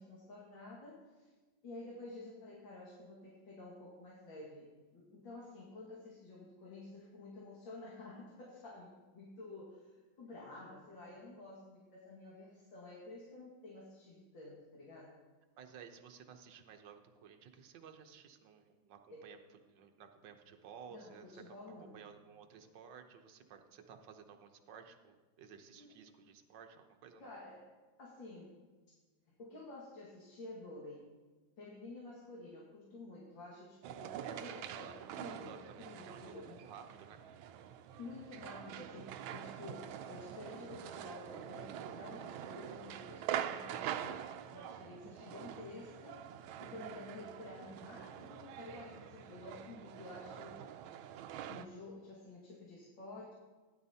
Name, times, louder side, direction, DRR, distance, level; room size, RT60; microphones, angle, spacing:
voice 1, 0.0-1.3 1.6-15.2 19.1-19.2 20.9-22.0 25.8-25.9 27.2-27.7 28.0-28.6 28.9-29.0 29.4-31.1 31.6-36.6 38.0-44.2 44.5-50.6 51.5-53.3, left 2 dB, 70° left, -5 dB, 2.6 m, -51 dB
voice 2, 15.6-27.3 34.2-37.2, right 7 dB, 65° right, 5 dB, 1.5 m, -55 dB
sound 1, 33.8-51.7, right 10 dB, 85° right, 1.4 m, -45 dB
15.5 x 10.5 x 2.8 m, 1.3 s
omnidirectional pair, 2.1 m